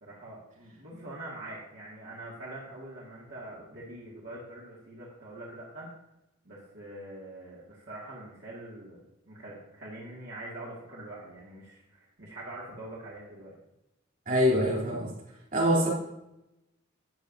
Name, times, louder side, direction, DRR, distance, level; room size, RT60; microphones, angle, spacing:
voice 1, 0.0-5.9 6.4-13.6, right 1 dB, 60° right, -6 dB, 2.1 m, -44 dB
voice 2, 14.3-15.1 15.5-15.9, equal, 45° right, -3 dB, 3.0 m, -24 dB
12.0 x 8.8 x 2.7 m, 0.89 s
head